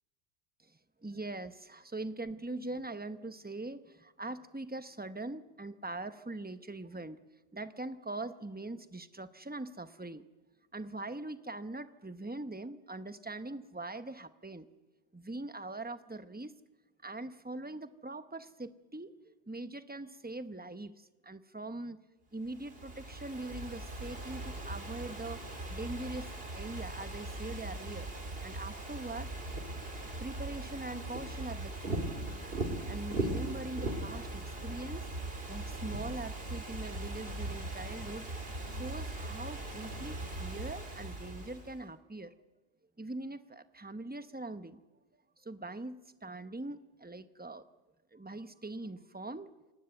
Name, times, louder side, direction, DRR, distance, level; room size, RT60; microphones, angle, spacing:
voice 1, 0.6-10.2 10.7-14.7 15.1-16.5 17.0-22.0 22.3-25.4 25.7-28.1 28.4-29.3 30.0-32.1 32.9-35.1 35.5-38.3 38.7-42.3 43.0-44.8 45.4-47.7 48.1-49.5, right 2 dB, 10° right, 11 dB, 0.8 m, -42 dB
Ocean / Fireworks, 22.5-41.8, right 2 dB, 55° right, 3.2 m, -39 dB
27.5 x 20.0 x 8.1 m, 1.1 s
omnidirectional pair, 1.2 m